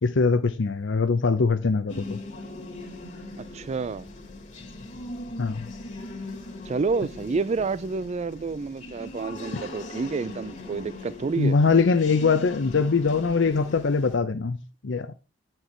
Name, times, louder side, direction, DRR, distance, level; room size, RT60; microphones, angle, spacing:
voice 1, 0.0-2.2 5.4-5.7 11.4-15.1, left 4 dB, 70° left, 0.6 m, -22 dB
sound 1, 1.9-14.2, left 2 dB, 40° left, 1.8 m, -40 dB
voice 2, 3.4-4.1 6.7-11.6, right 4 dB, 35° right, 0.4 m, -29 dB
9.7 x 4.5 x 4.4 m
head